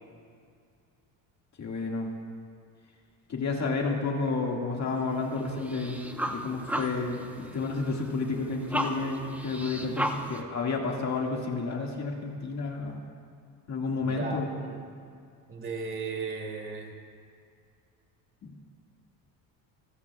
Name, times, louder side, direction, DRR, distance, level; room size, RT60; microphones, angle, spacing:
voice 1, 1.6-2.1 3.3-6.0 6.2-13.0 13.7-14.6 18.4-18.5, left 3 dB, 40° left, 0 dB, 2.0 m, -31 dB
sound 1, 4.9-10.4, right 1 dB, 5° right, 1.0 m, -35 dB
voice 2, 14.0-14.4 14.6-14.8 15.5-16.9, right 4 dB, 30° right, 1 dB, 2.8 m, -35 dB
25.5 x 16.5 x 2.4 m, 2.3 s
cardioid pair, 110°, 41 cm